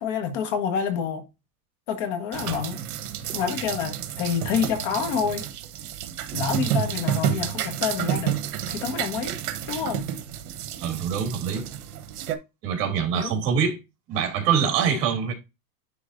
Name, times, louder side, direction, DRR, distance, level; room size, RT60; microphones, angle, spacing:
voice 1, 0.0-1.2 1.9-2.8 3.3-5.4 6.3-8.4 8.7-9.4 9.7-10.1 13.1-13.3, left 7 dB, 45° left, 1.5 m, -28 dB
sound 1, 2.3-12.4, right 10 dB, 65° right, 1.2 m, -30 dB
voice 2, 10.8-11.7 12.6-13.8 14.1-15.3, right 7 dB, 40° right, 2.5 m, -24 dB
10.5 x 4.0 x 2.6 m
supercardioid pair, 150°, 47 cm